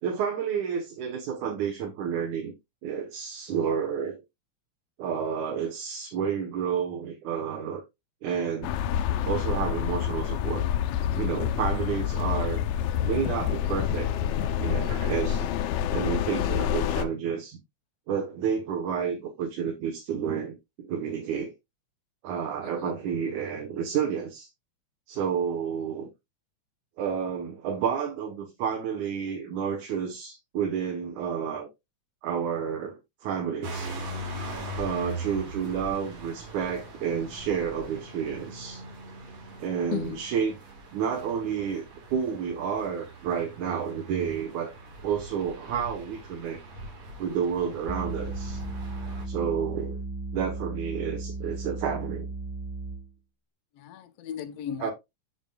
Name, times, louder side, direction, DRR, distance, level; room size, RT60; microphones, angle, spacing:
voice 1, 0.0-2.5 2.8-4.2 5.0-7.8 8.2-8.8 9.2-10.7 11.2-12.6 13.0-15.5 15.9-17.6 18.1-21.5 22.2-24.5 25.1-26.1 27.0-31.7 32.2-33.9 34.8-38.8 39.6-40.6 40.9-44.7 45.0-46.6 47.2-48.6 49.2-50.0 50.3-52.3 54.8-54.9, right 7 dB, 90° right, 2.7 m, -30 dB
sound 1, 8.6-17.0, left 10 dB, 90° left, 2.1 m, -27 dB
voice 2, 16.3-16.7 22.8-22.9 39.9-40.2 53.8-54.9, left 10 dB, 70° left, 1.7 m, -35 dB
sound 2, 33.6-49.3, right 1 dB, 65° right, 2.9 m, -41 dB
sound 3, 47.9-53.2, right 2 dB, 5° right, 0.7 m, -35 dB
7.5 x 7.2 x 2.3 m
omnidirectional pair, 3.3 m